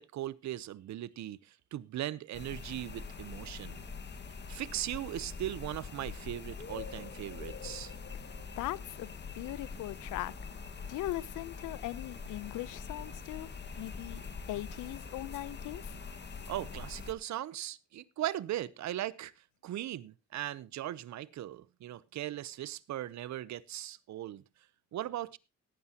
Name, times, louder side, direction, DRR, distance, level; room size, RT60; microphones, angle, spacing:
voice 1, 0.0-3.8 4.5-7.9 16.5-19.3 19.6-24.4 24.9-25.4, right 13 dB, 65° right, 0.8 m, -39 dB
sound 1, 2.3-17.1, left 5 dB, 35° left, 1.7 m, -44 dB
voice 2, 8.6-9.1 9.3-10.3 10.9-13.5 13.8-14.2 14.5-15.9, left 16 dB, 90° left, 0.7 m, -39 dB
17.5 x 9.6 x 2.9 m
cardioid pair, 90°, 30 cm